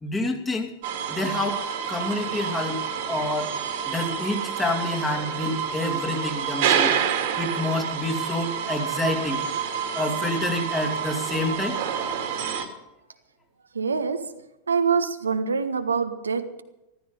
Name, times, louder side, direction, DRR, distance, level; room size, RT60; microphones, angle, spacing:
voice 1, 0.0-0.7 1.1-1.6 1.9-2.8 3.1-3.5 3.9-7.0 7.4-9.4 9.9-11.8, left 2 dB, 15° left, 3 dB, 2.6 m, -28 dB
sound 1, 0.8-12.7, right 8 dB, 50° right, 2.1 m, -28 dB
voice 2, 13.7-16.6, right 5 dB, 75° right, 8 dB, 1.1 m, -25 dB
14.5 x 14.0 x 5.5 m, 0.96 s
figure-of-eight pair, 90°, 0 cm